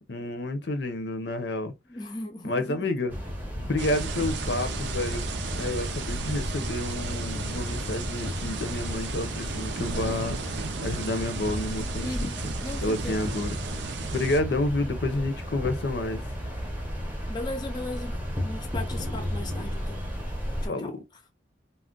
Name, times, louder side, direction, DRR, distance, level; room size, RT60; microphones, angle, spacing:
voice 1, 0.1-1.7 2.4-3.1 3.6-5.2 5.6-10.4 10.8-12.3 12.8-13.8 14.1-16.2 20.7-20.9, left 2 dB, 70° left, 0.6 m, -29 dB
voice 2, 1.9-2.9 12.0-12.3 12.6-13.2 17.3-20.0 20.6-21.0, left 2 dB, 25° left, 0.5 m, -37 dB
sound 1, 3.1-20.7, equal, 10° right, 0.7 m, -34 dB
sound 2, 3.8-14.4, right 4 dB, 80° right, 0.5 m, -35 dB
2.4 x 2.1 x 3.6 m
head